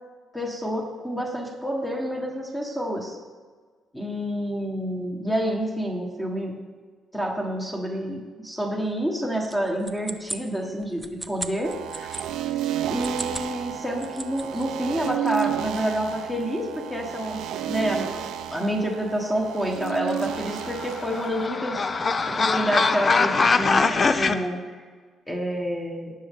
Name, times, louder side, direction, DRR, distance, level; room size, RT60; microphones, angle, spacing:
voice 1, 0.3-3.2 3.9-6.5 7.1-12.2 12.9-18.3 18.5-24.8 25.3-26.1, equal, 10° left, -1 dB, 1.4 m, -28 dB
sound 1, 9.4-12.3 12.9-13.5 13.8-14.7, right 2 dB, 10° right, 0.6 m, -36 dB
sound 2, 11.6-21.5, right 11 dB, 90° right, 0.6 m, -32 dB
sound 3, 20.5-24.4, left 4 dB, 30° left, 0.5 m, -22 dB
17.5 x 6.4 x 3.7 m, 1.5 s
cardioid pair, 125°, 0 cm